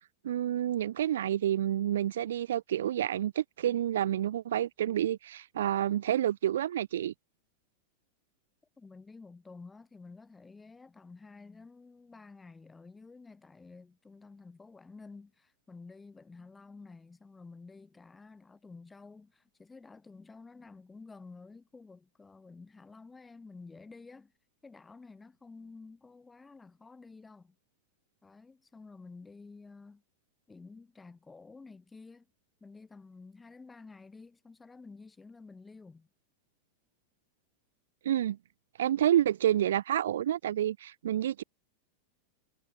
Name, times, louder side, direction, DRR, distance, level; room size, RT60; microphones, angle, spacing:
voice 1, 0.2-7.1 38.0-38.4 38.8-41.4, right 11 dB, 60° right, 1.0 m, -29 dB
voice 2, 8.8-24.3 24.6-27.5 28.2-30.0 30.5-32.3 32.6-36.1, left 4 dB, 10° left, 4.1 m, -51 dB
figure-of-eight pair, 90°, 0 cm